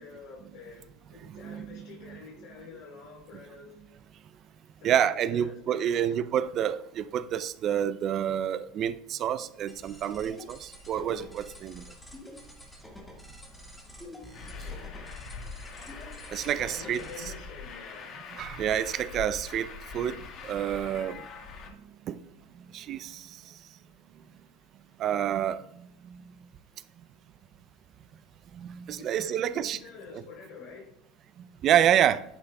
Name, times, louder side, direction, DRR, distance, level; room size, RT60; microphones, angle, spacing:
voice 1, 0.0-3.8 4.8-6.2 14.0-15.1 16.7-18.1 29.0-30.9, left 4 dB, 65° left, -3 dB, 3.4 m, -47 dB
voice 2, 1.3-2.2 4.8-11.8 16.3-17.0 18.4-21.3 22.1-22.2 22.7-23.5 25.0-25.6 26.0-26.2 28.5-29.8 30.1-30.2 31.6-32.2, right 10 dB, 40° right, 14 dB, 0.4 m, -28 dB
sound 1, 9.7-17.2, left 1 dB, 10° left, 1.7 m, -48 dB
Truck, 14.3-21.7, left 5 dB, 40° left, 1.5 m, -43 dB
9.9 x 8.8 x 2.3 m, 0.72 s
supercardioid pair, 125°, 0 cm